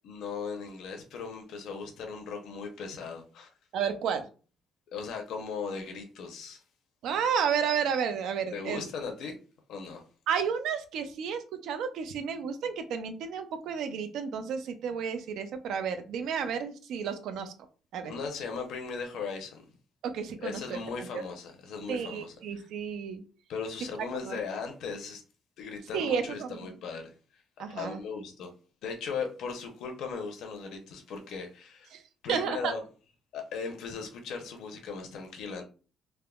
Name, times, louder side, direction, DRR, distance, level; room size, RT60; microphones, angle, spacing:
voice 1, 0.0-3.5 4.9-6.6 8.5-9.3 9.7-10.0 18.0-19.6 20.4-22.3 23.5-25.2 25.6-27.1 27.7-28.5 28.8-31.9 32.2-32.8 33.3-35.6, left 5 dB, 75° left, 0.7 m, -38 dB
voice 2, 3.7-4.3 7.0-8.8 10.3-17.5 17.9-18.1 20.0-20.8 21.1-21.2 21.9-23.2 24.2-24.4 25.9-26.6 27.6-28.0 31.9-32.0 32.3-32.7, right 7 dB, 75° right, 0.4 m, -31 dB
3.4 x 2.0 x 2.3 m
cardioid pair, 145°, 0 cm